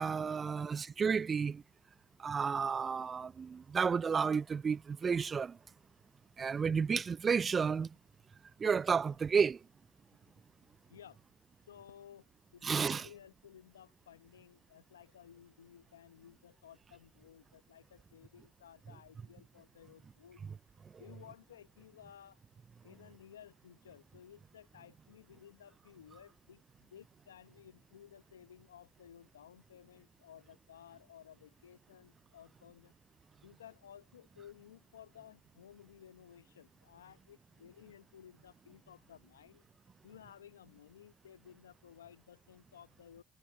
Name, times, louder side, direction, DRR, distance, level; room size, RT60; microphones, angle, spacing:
voice 1, 0.0-1.6 2.2-5.6 6.4-7.9 8.6-9.6 12.6-13.1, right 6 dB, 40° right, 0.3 m, -31 dB
voice 2, 10.6-11.2 11.7-20.4 21.0-22.4 22.8-32.9 33.4-39.7 40.0-43.2, left 9 dB, 90° left, 0.8 m, -57 dB
hypercardioid pair, 50°, 0 cm